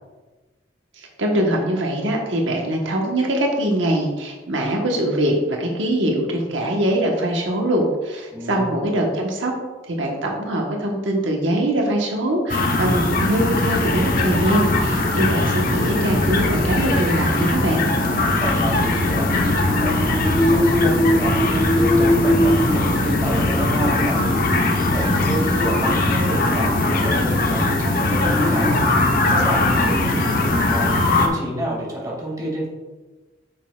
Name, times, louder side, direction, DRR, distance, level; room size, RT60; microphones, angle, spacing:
voice 1, 1.0-9.5 9.8-17.8, right 1 dB, 90° right, 0 dB, 1.2 m, -22 dB
voice 2, 8.3-8.9 17.8-24.4 24.9-28.8 29.3-32.7, equal, 20° right, -3 dB, 2.2 m, -29 dB
sound 1, 12.5-31.3, left 2 dB, 50° left, 0.9 m, -20 dB
sound 2, 18.5-30.3, equal, 5° left, 0.4 m, -24 dB
9.0 x 6.4 x 2.4 m, 1.2 s
head